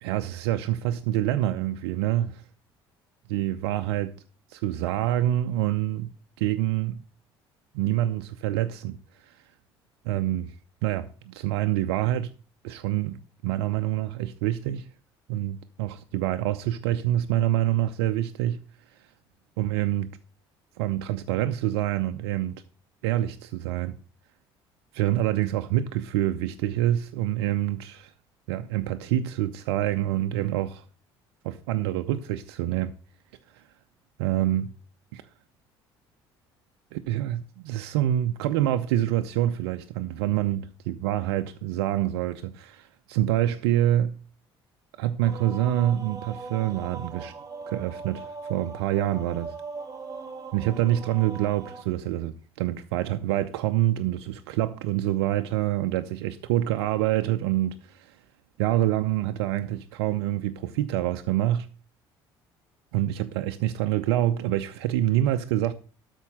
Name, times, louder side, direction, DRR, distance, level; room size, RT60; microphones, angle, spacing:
voice 1, 0.0-2.4 3.3-4.1 4.5-6.1 6.4-7.0 7.7-9.0 9.2-9.4 10.1-10.5 10.8-12.3 12.6-13.2 13.4-14.9 15.3-18.6 19.6-20.1 20.8-22.6 23.0-24.0 24.9-28.1 28.5-30.8 31.4-32.9 33.5-33.6 34.2-34.7 35.1-35.2 36.9-40.6 40.9-44.2 45.0-47.3 47.7-49.5 50.5-58.2 58.6-61.7 62.9-65.7, right 13 dB, 70° right, 0.6 m, -26 dB
sound 1, 45.2-51.8, right 4 dB, 25° right, 1.8 m, -40 dB
12.5 x 4.5 x 7.7 m
hypercardioid pair, 55°, 13 cm